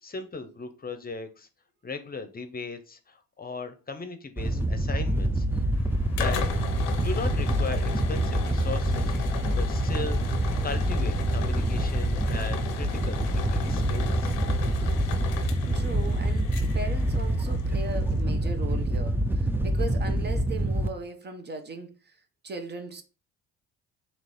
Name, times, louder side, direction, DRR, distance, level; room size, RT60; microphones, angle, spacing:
voice 1, 0.0-1.5 1.8-5.6 6.2-6.4 7.0-14.3, left 3 dB, 30° left, 0.7 m, -37 dB
Wind / Boat Water vehicle, 4.4-20.9, right 1 dB, 5° right, 0.5 m, -26 dB
sound 1, 5.7-18.2, left 8 dB, 90° left, 0.7 m, -37 dB
voice 2, 15.7-22.2 22.4-23.0, right 3 dB, 35° right, 0.7 m, -38 dB
3.1 x 3.0 x 4.1 m
supercardioid pair, 65°, 31 cm